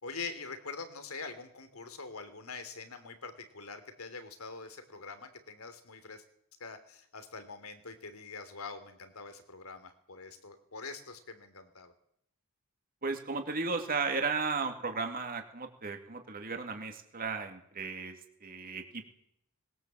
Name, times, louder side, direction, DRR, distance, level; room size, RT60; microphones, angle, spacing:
voice 1, 0.0-6.2 6.6-11.9, left 4 dB, 75° left, 9 dB, 3.1 m, -44 dB
voice 2, 13.0-18.1 18.4-19.1, right 4 dB, 45° right, 5 dB, 2.5 m, -35 dB
21.0 x 19.5 x 7.6 m, 0.71 s
head